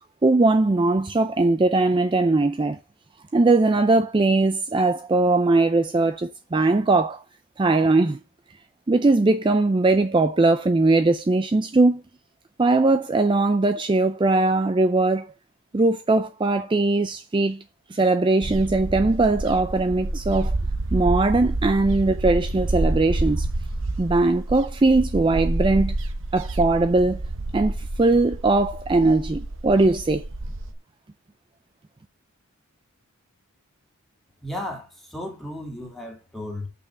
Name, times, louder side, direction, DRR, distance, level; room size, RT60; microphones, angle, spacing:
voice 1, 0.2-2.8 3.3-7.2 7.6-8.2 8.9-12.0 12.6-15.3 15.7-17.6 17.9-20.5 20.9-23.5 24.0-26.0 26.3-27.2 27.5-30.2, right 2 dB, 20° right, 0.4 m, -20 dB
sound 1, 18.4-30.7, right 2 dB, 60° right, 0.9 m, -28 dB
voice 2, 34.4-36.7, left 1 dB, ahead, 2.3 m, -34 dB
6.6 x 5.5 x 6.7 m
head